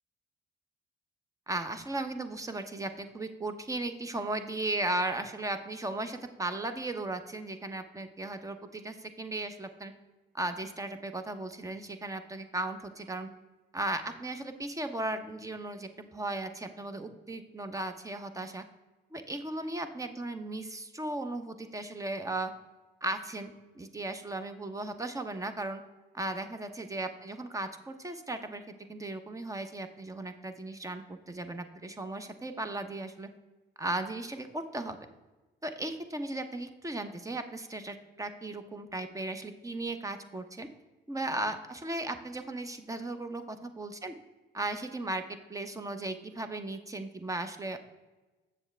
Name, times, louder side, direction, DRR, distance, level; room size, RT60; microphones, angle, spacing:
voice 1, 1.5-9.9 10.3-13.3 13.7-18.6 19.1-22.5 23.0-25.8 26.1-28.6 28.9-33.3 33.8-35.0 35.6-40.7 41.1-44.1 44.5-45.2 45.5-47.8, right 2 dB, 15° right, 9 dB, 0.7 m, -36 dB
7.4 x 7.0 x 3.3 m, 1.2 s
cardioid pair, 90°, 20 cm